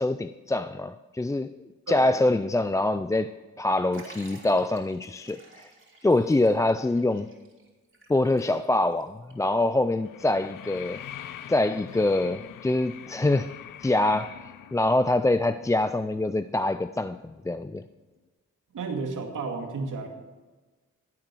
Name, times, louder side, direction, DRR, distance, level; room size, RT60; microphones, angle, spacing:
voice 1, 0.0-1.5 1.9-5.7 6.0-7.3 8.1-11.0 11.5-13.5 13.8-14.3 14.7-17.8, left 2 dB, 10° left, 11 dB, 0.3 m, -25 dB
Liquid, 3.9-9.0 9.3-9.4 10.3-10.4, right 2 dB, 40° right, 3.5 m, -52 dB
sound 1, 9.3-17.6 17.9-18.0, left 11 dB, 80° left, 0.6 m, -44 dB
voice 2, 18.7-20.1, right 4 dB, 75° right, 2 dB, 2.4 m, -32 dB
15.5 x 8.9 x 6.3 m, 1.3 s
cardioid pair, 80°, 32 cm